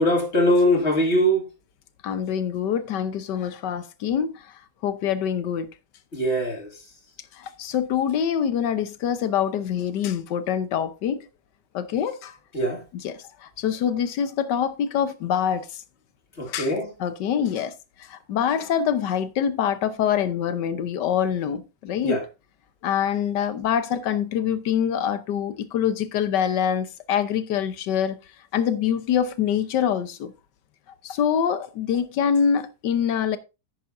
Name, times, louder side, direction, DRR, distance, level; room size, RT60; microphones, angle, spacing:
voice 1, 0.0-1.4 6.1-6.7 12.5-12.8 16.4-16.9 22.0-22.2, equal, 40° left, 2.3 m, -21 dB
voice 2, 2.0-4.3 4.8-5.7 7.4-11.2 11.7-12.3 12.9-13.2 13.6-15.7 16.5-16.7 17.0-17.7 18.1-22.2 22.8-28.2 28.5-30.3 31.0-33.4, left 8 dB, 75° left, 1.4 m, -25 dB
10.0 x 9.2 x 2.6 m
omnidirectional pair, 1.9 m